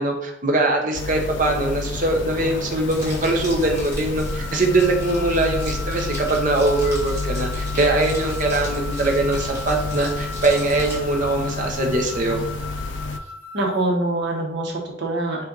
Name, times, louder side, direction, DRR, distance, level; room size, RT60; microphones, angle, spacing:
voice 1, 0.0-12.4, right 2 dB, 45° right, 2 dB, 0.7 m, -22 dB
sound 1, 0.9-13.2, left 3 dB, 80° left, 0.4 m, -30 dB
Crumpling crinkling, 2.8-10.9, equal, 15° right, 1.6 m, -36 dB
sound 2, 4.2-13.8, left 1 dB, 10° left, 0.9 m, -37 dB
voice 2, 13.5-15.4, right 2 dB, 65° right, -1 dB, 1.0 m, -24 dB
5.2 x 2.5 x 3.9 m, 0.78 s
head